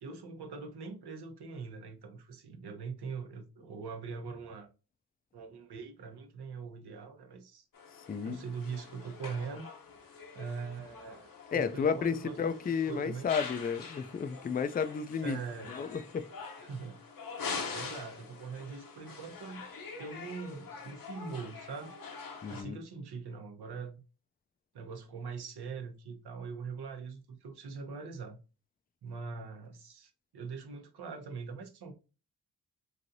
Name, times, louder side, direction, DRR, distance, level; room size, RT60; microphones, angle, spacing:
voice 1, 0.0-4.7 5.3-7.7 8.2-9.7 10.3-12.5 12.9-13.3 15.2-15.7 16.6-17.0 17.7-19.7 20.0-22.0 22.5-24.0 24.7-28.4 29.0-31.9, right 5 dB, 80° right, 0.8 m, -42 dB
sound 1, 7.7-22.6, left 5 dB, 60° left, 0.8 m, -45 dB
voice 2, 8.1-8.4 11.5-15.4 15.7-16.3 22.4-22.8, left 6 dB, 25° left, 0.3 m, -32 dB
3.2 x 2.7 x 2.6 m
cardioid pair, 60°, 39 cm